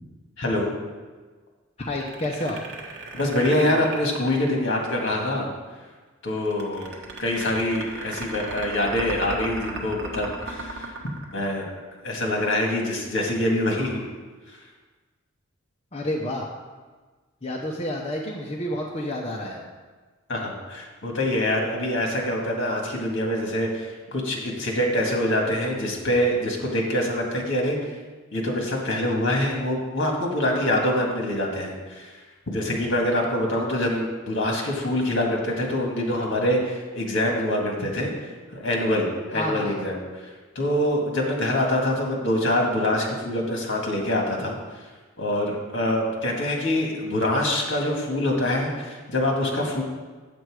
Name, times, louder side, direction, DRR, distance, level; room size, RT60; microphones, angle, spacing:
voice 1, 0.4-0.7 3.1-5.5 6.2-6.9 7.2-10.9 11.3-11.7 12.0-14.1 20.3-27.8 28.3-32.1 32.5-40.0 40.6-44.6 45.2-49.8, left 1 dB, 60° left, 0 dB, 1.8 m, -25 dB
voice 2, 1.8-2.6 15.9-16.5 17.4-19.7 39.3-39.8, left 1 dB, 30° left, -1 dB, 0.7 m, -29 dB
sound 1, 1.9-5.1 6.5-12.0, right 2 dB, 55° right, 1.3 m, -35 dB
8.0 x 7.7 x 4.8 m, 1.4 s
head